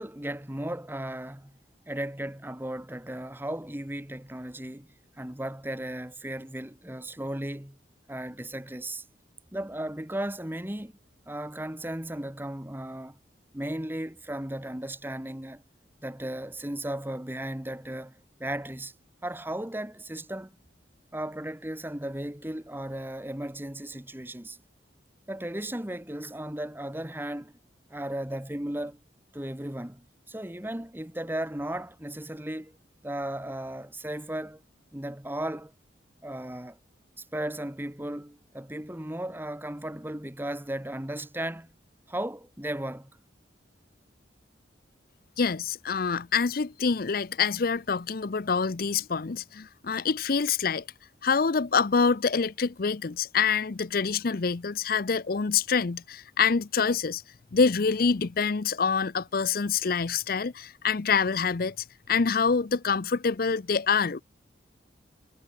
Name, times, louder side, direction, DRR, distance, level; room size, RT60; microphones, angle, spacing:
voice 1, 0.0-1.6 1.9-4.9 5.2-7.8 8.1-9.0 9.5-10.9 11.3-13.2 13.5-15.6 16.0-18.9 19.2-20.6 21.1-24.6 25.3-27.6 27.9-29.0 29.3-32.8 33.0-34.6 34.9-35.7 36.2-36.8 37.2-41.7 42.1-43.1, right 1 dB, 10° right, 1.3 m, -35 dB
voice 2, 45.4-50.8 51.2-57.2 57.5-61.8 62.1-64.2, left 5 dB, 50° left, 0.6 m, -26 dB
head